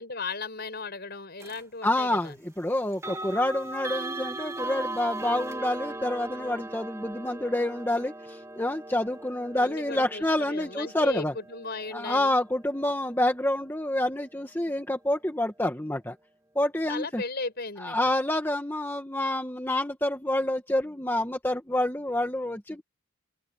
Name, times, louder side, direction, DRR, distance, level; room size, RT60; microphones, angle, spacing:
voice 1, 0.0-2.3 9.5-12.3 16.9-18.0, left 3 dB, 45° left, 5.8 m, -36 dB
sound 1, 1.4-1.6 2.9-13.8, right 2 dB, 15° right, 2.2 m, -39 dB
voice 2, 1.8-11.3 11.9-16.1 16.5-17.2 17.8-22.8, left 1 dB, 10° left, 1.5 m, -28 dB
open air
head